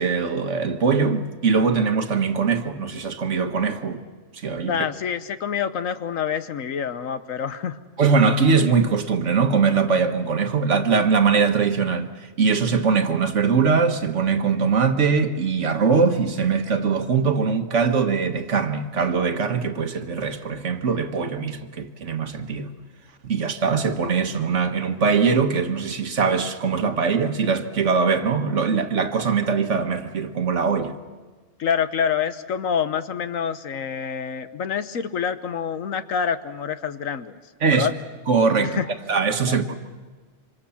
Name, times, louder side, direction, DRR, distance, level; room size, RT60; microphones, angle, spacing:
voice 1, 0.0-4.0 4.3-4.8 8.0-12.1 12.4-22.7 23.2-30.9 37.6-37.9 38.3-38.8 39.1-39.7, right 5 dB, 65° right, 1.7 m, -21 dB
voice 2, 4.7-7.8 31.6-37.3 37.7-37.9 38.6-38.9 39.4-39.6, left 7 dB, 85° left, 1.4 m, -27 dB
26.5 x 26.0 x 7.2 m
omnidirectional pair, 1.3 m